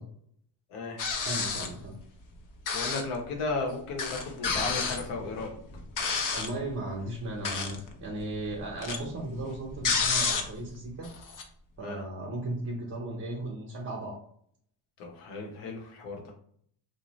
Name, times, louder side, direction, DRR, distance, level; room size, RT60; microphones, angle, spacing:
voice 1, 0.7-1.1 2.7-5.5 11.8-12.0 15.0-16.3, left 3 dB, 85° left, 1 dB, 0.9 m, -35 dB
sound 1, 1.0-1.8 2.7-3.2 3.5-3.6 4.0-6.6 7.3-7.9 8.2-10.7 11.0-11.4, left 5 dB, 40° left, 0.6 m, -30 dB
voice 2, 1.2-2.0 6.3-11.1 11.8-14.2, right 2 dB, 30° right, -2 dB, 0.8 m, -36 dB
2.7 x 2.1 x 3.0 m, 0.63 s
cardioid pair, 80°, 49 cm